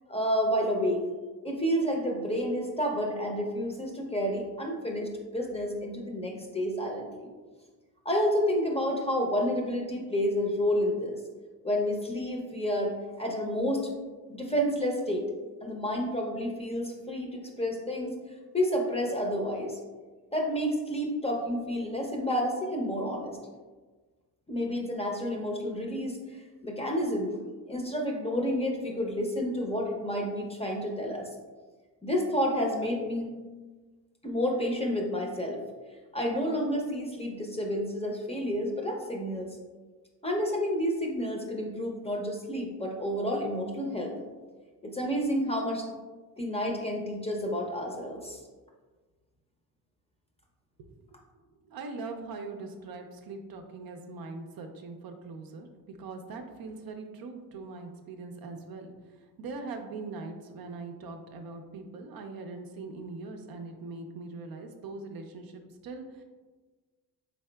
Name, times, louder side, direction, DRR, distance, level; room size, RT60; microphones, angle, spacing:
voice 1, 0.1-1.0 1.4-7.3 8.0-11.2 11.6-12.9 13.2-13.9 14.3-15.2 15.6-18.1 18.5-19.8 20.3-23.4 24.5-26.2 26.6-27.4 27.7-31.3 32.0-33.3 34.2-35.6 36.1-39.5 40.2-44.1 44.8-45.9 46.4-48.4, equal, 15° left, 0 dB, 0.6 m, -30 dB
voice 2, 51.6-55.7 56.0-66.2, right 3 dB, 60° right, 4 dB, 0.5 m, -41 dB
4.0 x 3.5 x 2.2 m, 1.3 s
cardioid pair, 75°, 41 cm